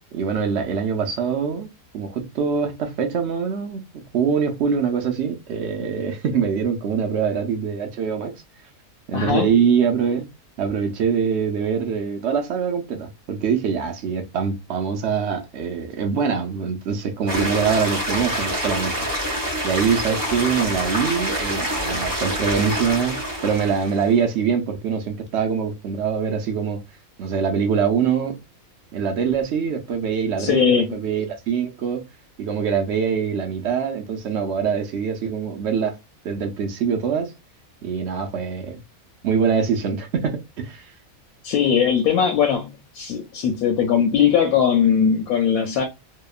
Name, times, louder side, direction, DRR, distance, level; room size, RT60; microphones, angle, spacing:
voice 1, 0.1-1.7 1.9-8.3 9.1-10.3 10.6-18.9 19.6-26.8 27.2-28.4 28.9-32.0 32.4-36.0 36.2-37.3 37.8-38.8 39.2-40.9, right 6 dB, 60° right, 0.8 m, -24 dB
voice 2, 9.1-9.5 30.4-31.0 41.4-45.9, left 7 dB, 85° left, 1.1 m, -20 dB
sound 1, 17.3-24.1, equal, 20° right, 0.6 m, -26 dB
2.8 x 2.2 x 2.3 m
omnidirectional pair, 1.5 m